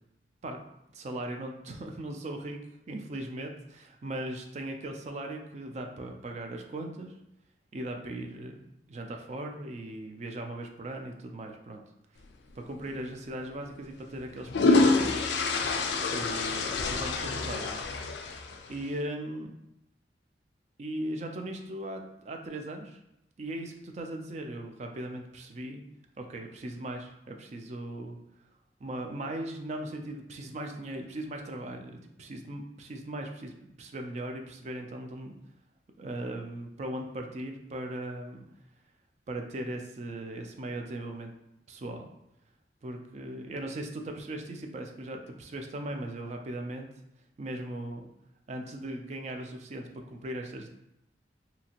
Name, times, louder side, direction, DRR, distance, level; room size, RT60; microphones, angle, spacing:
voice 1, 0.9-2.6 2.9-7.1 7.7-11.8 12.6-15.4 16.1-17.8 18.7-19.5 20.8-23.0 23.4-25.8 26.2-28.2 28.8-35.4 36.0-38.4 39.3-41.3 41.7-42.1 42.8-46.9 47.4-48.1 48.5-50.7, right 1 dB, 40° right, 3 dB, 0.4 m, -38 dB
sound 1, 12.8-13.0 14.2-18.8, left 3 dB, 75° left, 0.3 m, -27 dB
2.8 x 2.5 x 2.8 m, 0.85 s
head